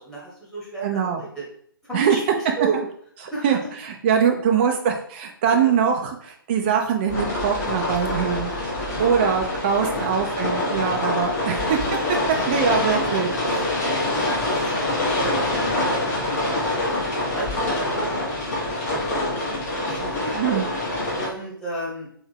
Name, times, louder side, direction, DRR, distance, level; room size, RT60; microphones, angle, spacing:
voice 1, 0.0-1.4 1.9-2.8 3.3-3.6 4.6-4.7 5.5-5.8 6.6-6.9 8.9-9.5 9.9-10.5 11.4-11.8 12.5-13.7 14.2-16.8 17.3-18.2 18.6-19.4 19.8-20.6 21.1-22.1, right 3 dB, 5° left, -7 dB, 1.2 m, -34 dB
voice 2, 0.8-1.2 1.9-2.2 3.2-3.6 3.8-8.5 9.0-11.8 12.5-13.3 20.3-20.7, right 7 dB, 30° right, 2 dB, 0.3 m, -22 dB
sound 1, 7.1-21.3, left 1 dB, 40° left, 1.5 m, -25 dB
3.4 x 3.4 x 3.4 m, 0.64 s
figure-of-eight pair, 130°, 12 cm